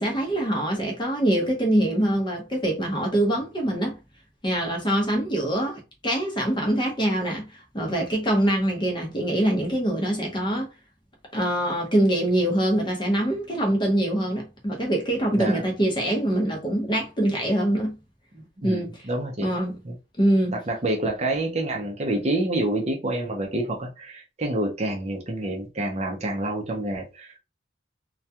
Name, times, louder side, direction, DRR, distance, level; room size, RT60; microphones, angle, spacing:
voice 1, 0.0-4.0 4.4-10.7 11.3-18.0 18.6-19.0 19.4-19.8 20.2-20.6, right 1 dB, 25° left, 0.7 m, -24 dB
voice 2, 18.4-19.5 19.8-20.0 20.7-27.4, right 1 dB, 35° right, 0.5 m, -28 dB
2.3 x 2.2 x 2.7 m
head